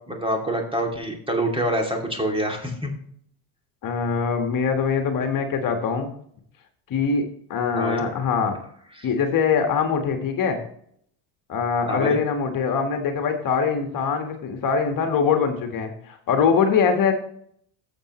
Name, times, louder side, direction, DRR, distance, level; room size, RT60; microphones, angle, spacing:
voice 1, 0.1-2.9 7.7-8.0 9.0-9.1 11.9-12.2, right 1 dB, 10° right, 2 dB, 2.6 m, -26 dB
voice 2, 3.8-6.1 6.9-7.2 7.5-8.6 9.0-10.6 11.5-17.1, left 6 dB, 50° left, 5 dB, 1.7 m, -23 dB
12.5 x 7.3 x 3.1 m, 0.66 s
supercardioid pair, 100°, 43 cm